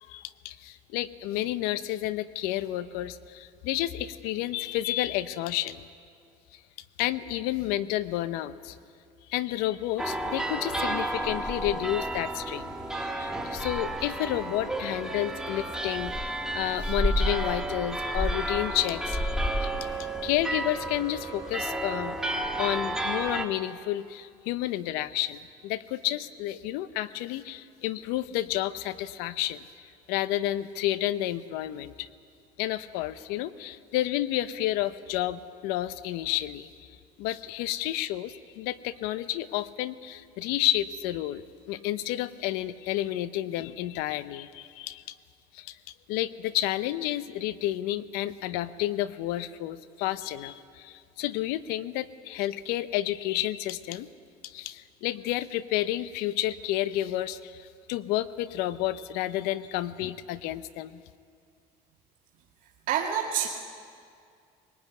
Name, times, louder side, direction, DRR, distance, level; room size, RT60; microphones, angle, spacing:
voice 1, 0.0-5.8 7.0-8.8 9.3-19.2 19.6-19.7 20.2-22.2 22.6-29.7 30.1-32.1 32.6-36.7 37.2-45.0 45.5-45.8 46.1-54.1 54.4-61.0, left 14 dB, 80° left, 14 dB, 0.8 m, -30 dB
sound 1, 10.0-23.5, right 1 dB, 5° right, 1.7 m, -31 dB
voice 2, 62.9-63.5, right 9 dB, 60° right, -1 dB, 2.2 m, -27 dB
21.0 x 19.0 x 9.4 m, 2.3 s
cardioid pair, 105°, 15 cm